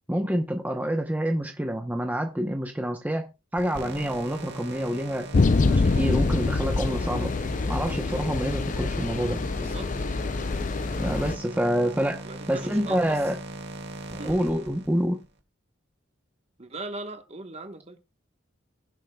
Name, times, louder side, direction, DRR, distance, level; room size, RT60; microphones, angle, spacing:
voice 1, 0.1-5.3 5.7-7.3 7.7-9.4 11.0-12.2 12.5-13.4 14.2-15.2, equal, 10° right, 0.8 m, -27 dB
sound 1, 3.6-15.2, right 2 dB, 60° right, 2.0 m, -39 dB
sound 2, 5.3-11.4, left 3 dB, 40° left, 0.4 m, -25 dB
voice 2, 9.5-9.9 12.2-13.2 14.2-14.4 16.6-18.0, right 2 dB, 35° right, 1.2 m, -39 dB
21.0 x 7.4 x 2.3 m
head